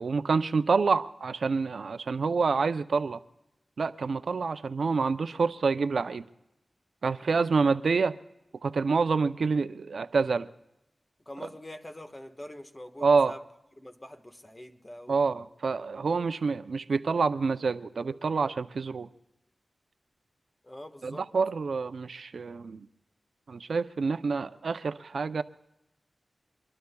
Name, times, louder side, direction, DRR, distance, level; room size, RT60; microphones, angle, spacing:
voice 1, 0.0-3.2 3.8-6.2 7.0-8.2 8.6-10.5 13.0-13.4 15.1-19.1 21.0-22.9 23.5-25.4, right 4 dB, 80° right, 12 dB, 0.5 m, -27 dB
voice 2, 11.2-13.4 13.8-15.2 20.6-21.3, left 1 dB, 20° left, 7 dB, 1.4 m, -44 dB
25.0 x 22.0 x 2.3 m, 0.90 s
wide cardioid pair, 75°, 0 cm